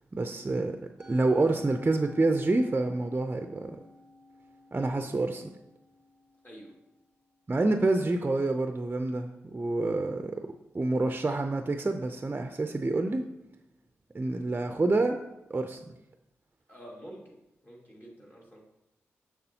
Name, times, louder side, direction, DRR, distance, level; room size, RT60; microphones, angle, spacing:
voice 1, 0.1-0.8 1.1-3.8 4.7-5.5 7.5-10.5 10.7-13.3 14.1-15.2 15.5-15.9, right 2 dB, 30° right, 6 dB, 0.5 m, -27 dB
Musical instrument, 1.0-7.4, left 1 dB, ahead, 1.2 m, -53 dB
voice 2, 4.7-5.1 6.4-6.7 16.7-17.4 17.6-18.6, equal, 35° left, -3 dB, 2.0 m, -48 dB
6.7 x 6.0 x 2.8 m, 0.90 s
supercardioid pair, 40°, 6 cm